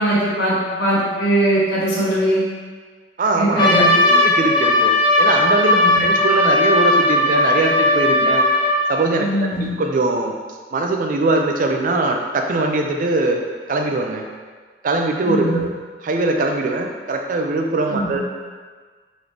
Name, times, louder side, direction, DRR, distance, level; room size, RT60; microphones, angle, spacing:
voice 1, 0.0-2.4 3.4-4.1 5.7-6.0 9.2-9.7 15.2-15.6 17.9-18.2, right 1 dB, 70° left, -8 dB, 1.4 m, -20 dB
voice 2, 3.2-3.9 4.2-4.9 5.2-8.5 8.9-10.3 10.7-13.4 13.7-14.2 14.8-15.7 16.0-18.2, right 2 dB, 50° right, 3 dB, 0.4 m, -21 dB
Trumpet, 3.6-8.9, left 1 dB, 25° left, 0.6 m, -16 dB
3.9 x 3.0 x 3.3 m, 1.5 s
head